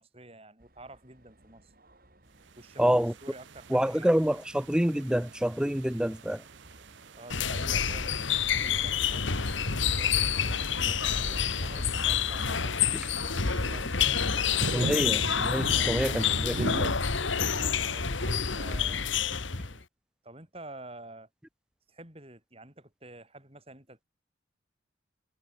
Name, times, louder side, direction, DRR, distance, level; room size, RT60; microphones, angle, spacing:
voice 1, 0.0-1.7 2.6-4.4 7.1-15.1 15.7-15.9 17.6-19.2 20.2-21.3 21.9-24.1, right 2 dB, 30° right, 6.8 m, -49 dB
sound 1, 0.6-19.8, right 1 dB, 45° right, 4.9 m, -53 dB
sound 2, 2.6-16.9, right 3 dB, 65° right, 0.8 m, -41 dB
voice 2, 2.8-3.1 3.7-6.4 14.7-17.0, equal, 5° right, 0.5 m, -27 dB
sound 3, 7.3-19.8, left 7 dB, 70° left, 1.7 m, -28 dB
head